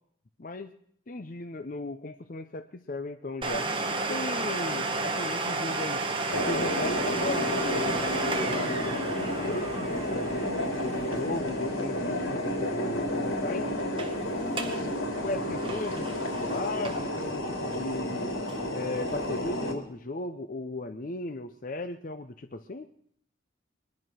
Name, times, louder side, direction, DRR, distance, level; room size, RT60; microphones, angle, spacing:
voice 1, 0.4-0.7 1.1-3.7 4.1-6.0 6.3-10.5 10.8-13.7 14.3-18.3 18.7-22.9, left 2 dB, 40° left, 7 dB, 0.6 m, -37 dB
Domestic sounds home sounds, 3.4-12.9 13.1-13.2 13.8-14.1 14.5-14.8 15.2-17.2 17.7-17.8 18.5-18.6, right 3 dB, 25° right, 1.3 m, -32 dB
sound 1, 6.3-19.7, left 1 dB, 85° left, 3.2 m, -31 dB
21.5 x 11.0 x 6.2 m, 0.68 s
head